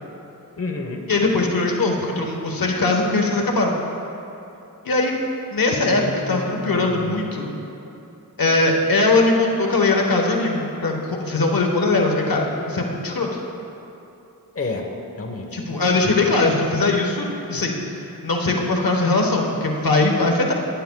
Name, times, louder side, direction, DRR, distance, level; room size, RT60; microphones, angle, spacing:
voice 1, 0.6-1.0 5.9-7.1 14.5-14.9 15.2-15.5, left 3 dB, 40° left, 2 dB, 1.1 m, -30 dB
voice 2, 1.1-3.7 4.8-5.1 5.5-7.6 8.4-13.4 15.5-17.8 18.2-20.5, left 2 dB, 70° left, 1 dB, 1.2 m, -20 dB
18.0 x 10.5 x 2.3 m, 2.9 s
wide cardioid pair, 55°, 36 cm